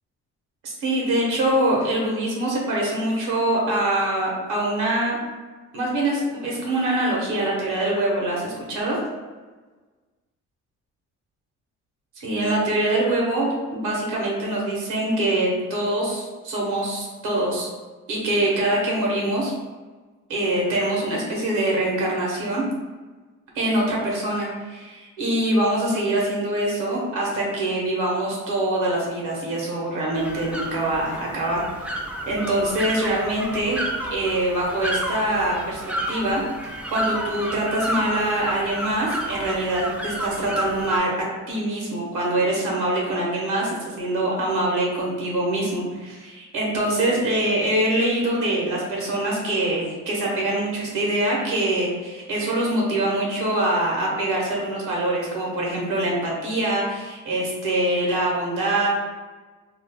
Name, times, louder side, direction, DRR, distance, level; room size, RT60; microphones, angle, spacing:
voice 1, 0.6-5.2 5.7-9.0 12.2-17.7 18.1-19.5 20.3-22.6 23.5-31.9 32.3-33.8 34.1-35.8 36.1-36.4 36.7-41.1 41.5-58.9, right 1 dB, 90° right, -3 dB, 1.0 m, -24 dB
sound 1, 30.2-41.0, right 1 dB, 5° right, 0.3 m, -31 dB
2.5 x 2.1 x 3.4 m, 1.3 s
cardioid pair, 90°, 30 cm